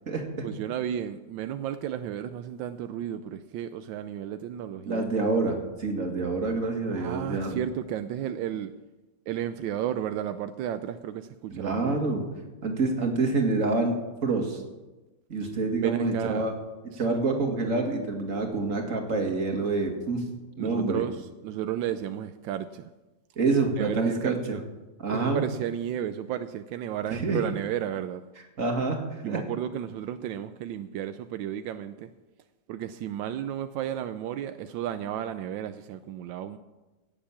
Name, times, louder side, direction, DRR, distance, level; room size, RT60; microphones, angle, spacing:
voice 1, 0.4-5.1 6.9-8.7 9.3-12.2 15.8-16.5 16.9-17.0 20.6-22.8 23.7-24.6 25.1-28.2 29.2-32.1 32.7-36.6, right 10 dB, 85° right, 10 dB, 1.4 m, -33 dB
voice 2, 4.9-7.6 11.5-12.2 12.6-13.9 14.2-14.6 15.3-16.5 17.0-20.2 20.6-21.0 23.4-24.4 25.0-25.4 27.1-27.4 28.6-29.4, right 3 dB, 45° right, 2 dB, 2.4 m, -27 dB
17.5 x 7.5 x 7.2 m, 1.1 s
omnidirectional pair, 2.0 m